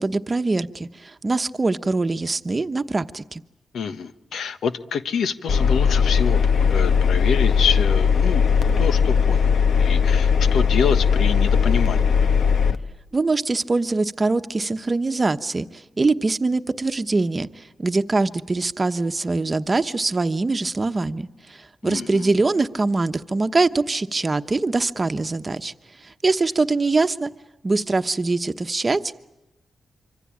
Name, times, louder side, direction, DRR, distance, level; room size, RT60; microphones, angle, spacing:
voice 1, 0.0-3.4 13.1-25.7 26.0-27.3 27.6-29.1, right 3 dB, 30° right, 10 dB, 1.1 m, -23 dB
voice 2, 3.7-8.5 8.8-9.5 9.8-12.0 21.8-22.3, left 6 dB, 85° left, 11 dB, 1.3 m, -27 dB
Engine, 5.5-12.8, left 6 dB, 70° left, 1.3 m, -18 dB
26.0 x 25.5 x 8.7 m, 0.94 s
cardioid pair, 100°, 0 cm